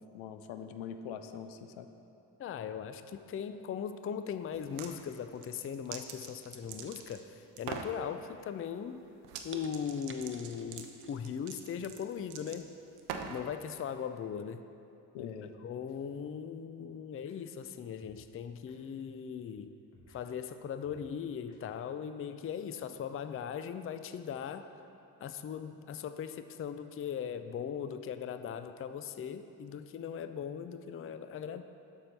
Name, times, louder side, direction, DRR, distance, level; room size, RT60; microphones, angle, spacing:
voice 1, 0.0-1.9 15.1-15.5, left 7 dB, 75° left, 8 dB, 0.6 m, -43 dB
voice 2, 2.4-9.0 9.4-12.7 13.3-14.6 15.2-15.3 15.6-19.7 20.1-24.7 25.2-31.6, left 7 dB, 30° left, 10 dB, 0.4 m, -39 dB
sound 1, 4.5-4.9 5.4-7.2 7.6-8.0 9.2-9.5 9.7-13.5, right 7 dB, 80° right, 0.7 m, -43 dB
sound 2, 6.6-7.6 8.0-8.4 8.9-9.0 9.5-11.2 11.6-11.7, right 4 dB, 25° right, 0.7 m, -52 dB
sound 3, 15.9-16.0 17.2-17.4 18.0-18.2 18.7-18.8 19.9-20.2 20.8-21.0 21.5-21.6, left 1 dB, 55° left, 1.6 m, -61 dB
7.4 x 5.4 x 5.7 m, 2.8 s
hypercardioid pair, 40°, 49 cm